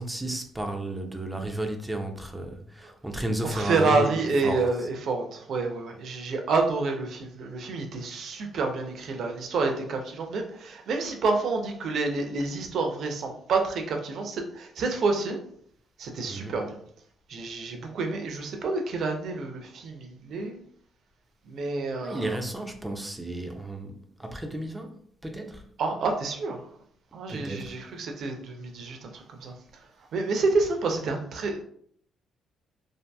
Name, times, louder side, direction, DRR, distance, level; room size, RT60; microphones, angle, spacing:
voice 1, 0.0-4.7 16.3-16.6 22.0-25.7 27.3-27.8, right 1 dB, 10° right, 0.4 m, -33 dB
voice 2, 3.5-15.4 16.0-16.8 17.3-20.6 21.5-22.4 25.8-26.6 27.1-29.5 30.1-31.6, right 3 dB, 65° right, 0.5 m, -28 dB
2.6 x 2.5 x 2.3 m
cardioid pair, 90°, 0 cm